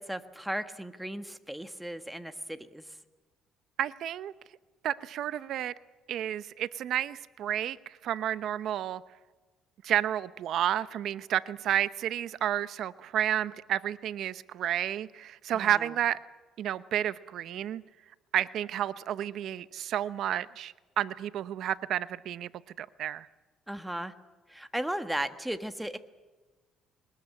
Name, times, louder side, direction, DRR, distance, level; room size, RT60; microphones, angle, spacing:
voice 1, 0.0-2.8 15.5-15.9 23.7-24.1 24.5-26.0, right 1 dB, 5° right, 8 dB, 1.3 m, -36 dB
voice 2, 3.8-4.3 4.8-5.7 6.1-9.0 9.8-16.2 16.6-17.8 18.3-22.5 22.8-23.3, right 11 dB, 65° right, 14 dB, 0.8 m, -31 dB
22.0 x 20.0 x 8.6 m, 1.2 s
cardioid pair, 110°, 0 cm